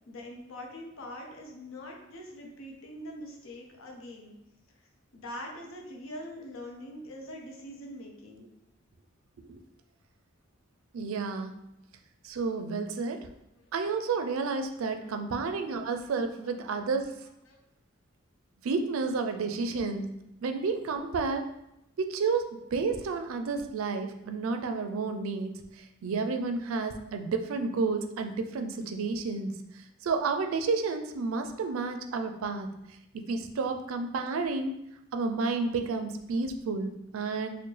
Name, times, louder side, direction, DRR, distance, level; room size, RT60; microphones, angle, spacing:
voice 1, 0.1-4.4 5.1-8.5 13.6-13.7 17.5-17.6, left 1 dB, 80° left, 0 dB, 0.7 m, -43 dB
voice 2, 10.9-11.6 12.2-13.3 13.7-17.2 18.6-20.0 20.4-21.5 22.0-32.7 33.1-34.8 35.1-37.6, right 4 dB, 85° right, 7 dB, 0.4 m, -31 dB
4.4 x 2.1 x 3.2 m, 0.83 s
head